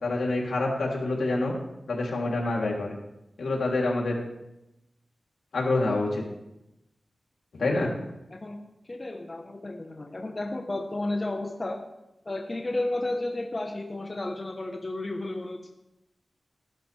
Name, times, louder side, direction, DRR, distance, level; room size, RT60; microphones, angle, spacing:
voice 1, 0.0-1.5 1.9-3.0 3.4-4.1 5.5-6.2 7.6-7.9, left 2 dB, 85° left, -2 dB, 3.3 m, -26 dB
voice 2, 7.6-8.6 8.9-11.8 12.2-15.7, left 2 dB, 30° left, 2 dB, 1.2 m, -33 dB
18.0 x 11.0 x 3.5 m, 0.91 s
wide cardioid pair, 130°, 0 cm